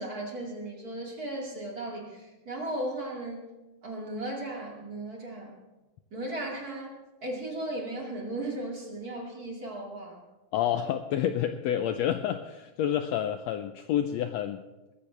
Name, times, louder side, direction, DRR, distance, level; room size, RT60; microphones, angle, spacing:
voice 1, 0.0-3.5 3.8-5.6 6.1-6.9 7.2-10.2, right 1 dB, 30° right, -1 dB, 2.5 m, -36 dB
voice 2, 10.5-14.7, left 10 dB, 85° left, 8 dB, 1.5 m, -29 dB
20.5 x 14.5 x 3.4 m, 1.1 s
omnidirectional pair, 3.6 m